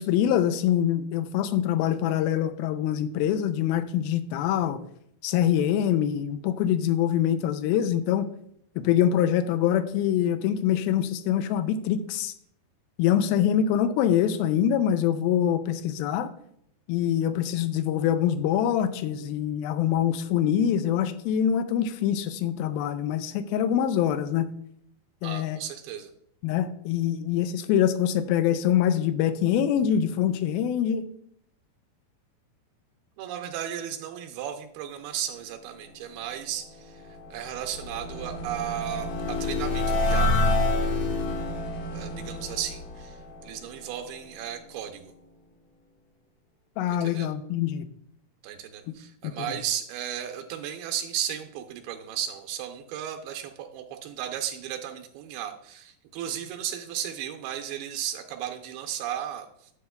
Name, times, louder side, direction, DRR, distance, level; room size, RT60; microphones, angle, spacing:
voice 1, 0.0-4.8 5.2-8.3 8.8-12.3 13.0-16.3 16.9-24.5 25.2-25.6 26.4-31.1 46.8-47.9 49.2-49.3, left 10 dB, 80° left, 11 dB, 2.3 m, -24 dB
voice 2, 25.2-26.1 33.2-40.3 41.9-45.1 47.0-47.3 48.4-59.7, right 10 dB, 90° right, 5 dB, 2.6 m, -35 dB
sound 1, 36.8-43.9, left 2 dB, 65° left, 1.6 m, -28 dB
9.9 x 8.6 x 2.3 m, 0.70 s
omnidirectional pair, 4.4 m